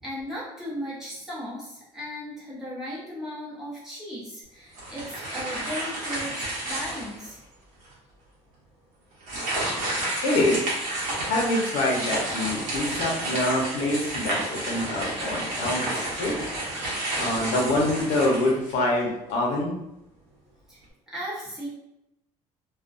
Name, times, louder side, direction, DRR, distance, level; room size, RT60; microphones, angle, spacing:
voice 1, 0.0-7.4 20.7-21.7, equal, 5° right, -9 dB, 0.8 m, -36 dB
sound 1, 4.7-7.3 7.8-7.9 9.2-19.0, right 1 dB, 85° right, 1.0 m, -31 dB
voice 2, 10.2-10.7 11.2-16.4 17.2-19.7, left 1 dB, 85° left, -1 dB, 0.6 m, -25 dB
2.4 x 2.1 x 2.4 m, 0.85 s
cardioid pair, 165°, 13 cm